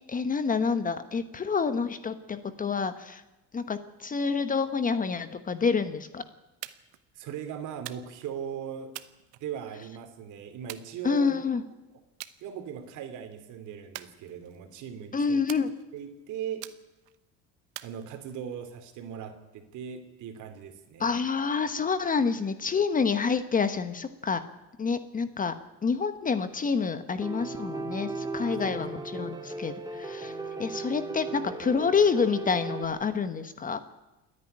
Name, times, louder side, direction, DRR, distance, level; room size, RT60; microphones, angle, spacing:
voice 1, 0.1-3.2 3.5-6.2 11.0-11.6 15.1-15.7 21.0-24.4 24.8-25.5 25.8-30.3 30.6-33.8, left 5 dB, 25° left, 11 dB, 1.1 m, -28 dB
sound 1, 6.6-7.0 7.9-8.3 8.9-9.9 10.7-11.5 12.2-12.4 12.8-13.2 13.9-14.7 15.5-16.1 16.6-17.2 17.8-18.6, right 17 dB, 90° right, 1.0 m, -45 dB
voice 2, 7.1-8.9 9.4-11.3 12.4-15.4 15.9-16.7 17.8-21.1 28.5-28.8, right 8 dB, 60° right, 7 dB, 2.9 m, -39 dB
Piano, 27.2-32.8, right 3 dB, 10° right, 2.1 m, -37 dB
28.0 x 9.8 x 9.8 m, 1.0 s
supercardioid pair, 115°, 34 cm